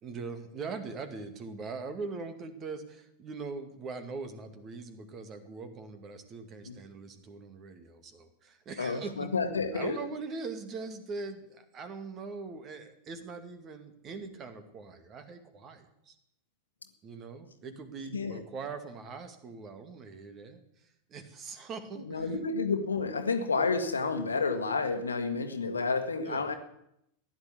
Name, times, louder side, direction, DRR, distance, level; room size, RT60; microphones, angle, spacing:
voice 1, 0.0-9.3 9.7-16.2 17.0-22.4 26.3-26.5, right 4 dB, 30° right, 9 dB, 2.2 m, -42 dB
voice 2, 8.8-10.0 18.1-18.4 22.1-26.5, left 4 dB, 75° left, 7 dB, 1.6 m, -30 dB
15.5 x 11.0 x 8.5 m, 0.79 s
figure-of-eight pair, 90°, 0 cm